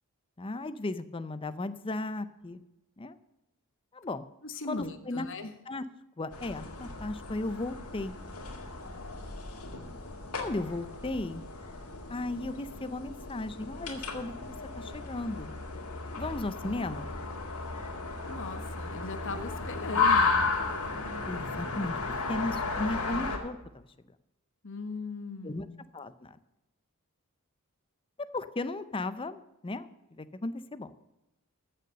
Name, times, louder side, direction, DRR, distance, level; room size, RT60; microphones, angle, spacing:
voice 1, 0.4-2.6 3.0-3.2 3.9-4.2 4.7-5.3 5.7-5.8 6.2-8.1 10.4-11.4 12.1-15.5 16.2-17.1 19.4-19.6 19.9-20.1 21.3-23.9 25.4-25.7 25.9-26.3 28.2-29.9 30.2-30.9, left 2 dB, 25° left, 12 dB, 0.6 m, -36 dB
voice 2, 4.4-5.5 18.3-20.5 24.6-25.8, left 3 dB, 60° left, 8 dB, 1.2 m, -39 dB
sound 1, 6.3-23.4, left 4 dB, 75° left, 2.1 m, -34 dB
14.5 x 6.7 x 6.6 m, 0.94 s
head